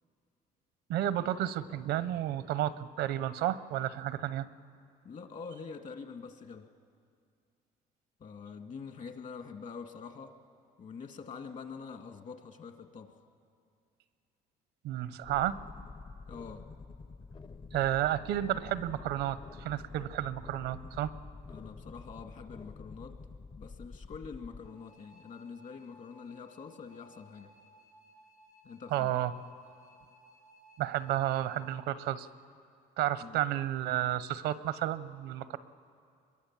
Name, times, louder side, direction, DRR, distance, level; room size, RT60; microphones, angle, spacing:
voice 1, 0.9-4.5 14.8-15.6 17.7-21.1 28.9-29.3 30.8-32.3 33.0-35.6, right 12 dB, 90° right, 14 dB, 0.8 m, -32 dB
voice 2, 5.0-6.7 8.2-10.3 10.8-13.2 16.2-16.7 21.5-23.2 23.6-27.5 28.6-29.2 33.2-33.4, left 5 dB, 50° left, 6 dB, 1.9 m, -45 dB
sound 1, 15.2-24.7, left 4 dB, 30° left, 0.7 m, -48 dB
sound 2, 24.6-31.8, equal, 85° left, 3.8 m, -60 dB
24.5 x 22.0 x 7.3 m, 2.3 s
cardioid pair, 110°, 17 cm